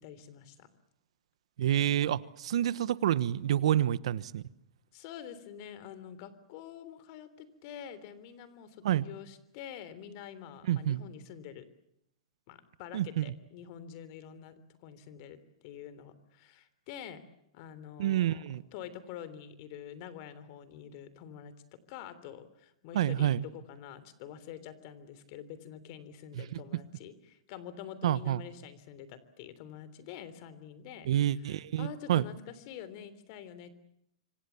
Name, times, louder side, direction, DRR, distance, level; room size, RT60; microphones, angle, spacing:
voice 1, 0.0-0.7 4.9-11.6 12.5-17.2 17.5-18.4 18.7-31.1 31.8-33.7, left 9 dB, 40° left, 15 dB, 3.4 m, -47 dB
voice 2, 1.6-4.4 8.8-9.0 10.7-11.0 12.9-13.3 18.0-18.6 22.9-23.4 26.3-26.6 28.0-28.4 31.0-32.3, right 11 dB, 70° right, 18 dB, 1.1 m, -28 dB
27.0 x 24.5 x 7.1 m, 0.77 s
hypercardioid pair, 155°, 3 cm